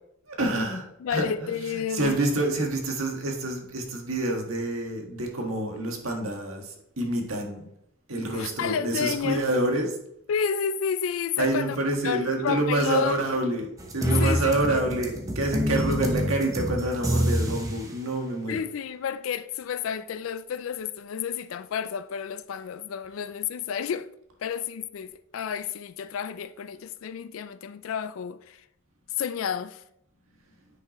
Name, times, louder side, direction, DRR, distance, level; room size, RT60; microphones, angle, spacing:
voice 1, 0.3-7.7 8.1-10.0 11.4-18.6, right 2 dB, 85° right, 1.7 m, -27 dB
voice 2, 1.0-2.2 8.3-9.5 10.3-11.8 12.0-13.2 14.2-14.5 18.5-24.1 24.4-28.6 29.2-29.8, left 7 dB, 75° left, 0.4 m, -31 dB
sound 1, 13.8-17.9, equal, 15° right, 1.0 m, -27 dB
10.0 x 5.7 x 3.1 m
head